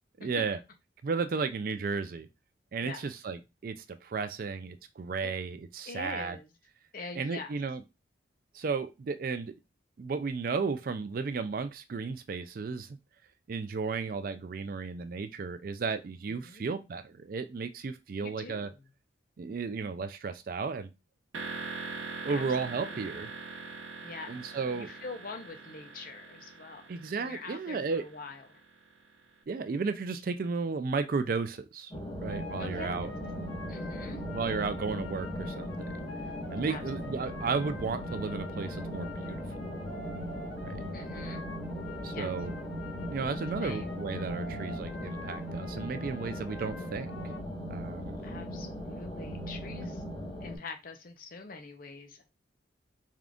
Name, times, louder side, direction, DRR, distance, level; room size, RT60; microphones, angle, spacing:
voice 1, 0.2-0.6 1.0-2.3 2.7-6.4 7.2-7.8 8.5-9.5 10.0-13.0 13.5-18.7 19.4-20.9 22.2-23.3 24.3-24.9 26.9-28.0 29.5-31.9 32.2-33.1 34.3-35.9 36.5-39.4 40.6-40.8 42.0-42.5 43.1-47.1 47.7-48.2, right 4 dB, 45° right, 0.3 m, -34 dB
voice 2, 5.8-6.5 6.9-7.6 16.3-16.7 18.2-18.9 22.3-22.4 22.8-23.2 24.0-28.6 32.6-33.2 33.7-34.2 36.7-36.8 40.9-41.4 42.1-42.3 43.6-43.9 48.2-50.0 50.4-52.2, left 4 dB, 45° left, 0.6 m, -44 dB
sound 1, 21.3-29.1, right 4 dB, 85° right, 0.8 m, -43 dB
sound 2, 31.9-50.6, equal, 20° left, 1.2 m, -38 dB
sound 3, 32.3-47.4, left 3 dB, 85° left, 0.6 m, -47 dB
3.6 x 2.4 x 3.5 m
head